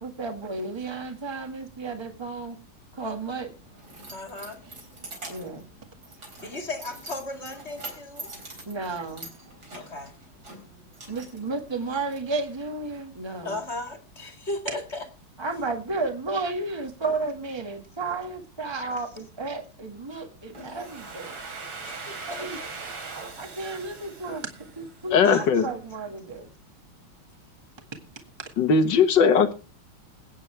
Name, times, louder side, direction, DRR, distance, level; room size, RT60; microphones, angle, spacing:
voice 1, 0.0-2.6 2.9-3.5 5.3-5.7 8.7-9.3 11.1-13.6 15.4-21.4 22.3-22.6 23.4-24.5 24.8-26.5, right 3 dB, 15° right, 1.7 m, -32 dB
Keys jangling, 3.2-12.2, right 2 dB, 50° right, 4.6 m, -45 dB
voice 2, 4.1-4.6 6.4-8.3 9.7-10.1 13.4-15.1 21.8-22.7 25.2-25.5, left 2 dB, 30° left, 2.2 m, -35 dB
Domestic sounds home sounds, 20.5-25.3, right 4 dB, 70° right, 3.5 m, -40 dB
voice 3, 25.1-25.6 28.6-29.5, left 6 dB, 60° left, 1.9 m, -19 dB
21.5 x 9.4 x 3.3 m
omnidirectional pair, 2.3 m